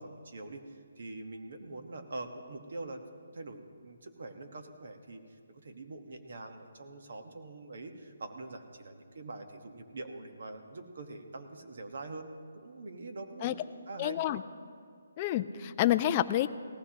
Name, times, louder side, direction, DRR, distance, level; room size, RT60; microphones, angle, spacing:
voice 1, 0.0-3.0 3.3-13.6 13.9-14.2, right 2 dB, 55° right, 5 dB, 1.3 m, -44 dB
voice 2, 14.0-14.4 15.2-16.5, left 13 dB, 20° left, 10 dB, 0.3 m, -28 dB
18.0 x 15.0 x 2.9 m, 2.2 s
hypercardioid pair, 170°, 0 cm